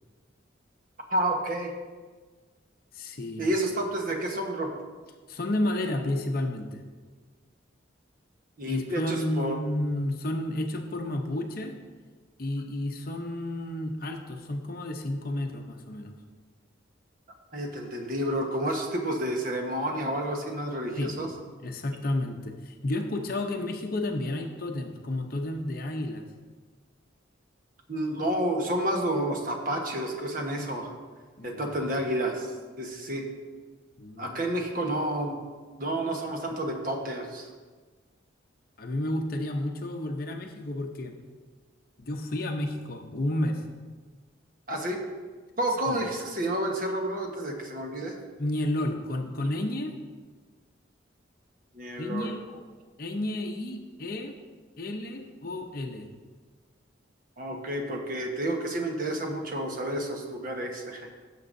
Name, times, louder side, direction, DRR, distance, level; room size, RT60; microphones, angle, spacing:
voice 1, 1.1-1.7 3.4-4.7 8.6-9.6 17.5-21.3 27.9-30.9 31.4-32.5 32.8-33.3 34.2-35.4 35.8-37.5 44.7-45.0 45.6-48.2 51.7-52.3 57.4-61.1, right 1 dB, 45° right, 2 dB, 1.2 m, -30 dB
voice 2, 2.9-3.4 5.3-6.8 8.7-11.8 12.4-16.1 21.0-21.2 21.6-26.2 31.4-31.7 34.0-34.4 38.8-41.2 42.0-43.6 45.9-46.0 48.4-49.9 52.0-52.4 53.0-54.4 54.8-56.1, left 1 dB, 50° left, 3 dB, 0.7 m, -31 dB
16.0 x 6.8 x 2.7 m, 1.4 s
head